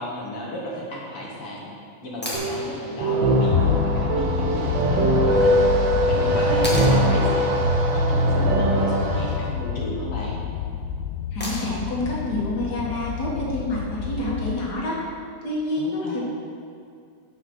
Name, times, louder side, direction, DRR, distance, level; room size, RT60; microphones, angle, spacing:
voice 1, 0.0-1.7 2.0-5.5 6.1-7.6 7.9-10.4 15.8-16.2, left 1 dB, 55° left, -3 dB, 2.1 m, -34 dB
sound 1, 2.2-2.5 4.8-4.9 6.6-7.0 9.0-9.4 11.4-11.9 14.0-14.1, left 1 dB, 10° left, 0.5 m, -32 dB
sound 2, 2.3-9.3, right 1 dB, 85° right, 2.7 m, -21 dB
sound 3, 3.5-14.7, left 8 dB, 80° left, 1.9 m, -29 dB
voice 2, 11.3-15.0 15.4-16.2, left 1 dB, 35° left, -5 dB, 2.0 m, -28 dB
9.8 x 5.5 x 6.2 m, 2.3 s
omnidirectional pair, 3.5 m